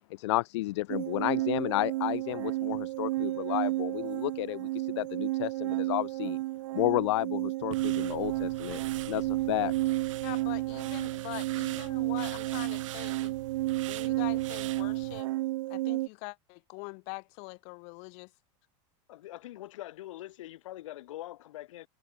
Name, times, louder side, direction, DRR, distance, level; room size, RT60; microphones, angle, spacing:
voice 1, 0.1-6.4 6.7-8.8 9.1-9.7, left 18 dB, 65° left, 3.2 m, -31 dB
sound 1, 0.9-16.1, right 18 dB, 70° right, 0.7 m, -32 dB
sound 2, 7.7-15.2, right 15 dB, 85° right, 3.1 m, -43 dB
voice 2, 10.2-13.3 13.9-15.3 15.7-18.3, left 40 dB or more, 45° left, 6.3 m, -43 dB
voice 3, 19.1-21.9, left 15 dB, 85° left, 5.5 m, -43 dB
supercardioid pair, 175°, 16 cm